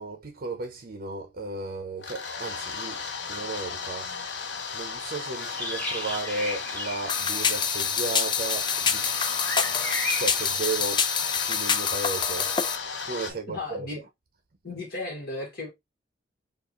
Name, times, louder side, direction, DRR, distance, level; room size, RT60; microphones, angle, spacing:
voice 1, 0.0-3.0 3.3-4.1 4.7-9.1 9.6-9.8 10.2-11.0 11.4-12.5 13.0-13.9, right 3 dB, 55° right, 0.7 m, -34 dB
sound 1, 2.0-13.3, left 5 dB, 80° left, 0.9 m, -35 dB
sound 2, 5.4-10.5, left 1 dB, 10° left, 1.0 m, -36 dB
sound 3, 7.1-12.8, left 6 dB, 25° left, 0.4 m, -26 dB
voice 2, 13.3-14.0 14.6-15.7, left 2 dB, 60° left, 1.8 m, -35 dB
4.7 x 2.6 x 3.0 m
head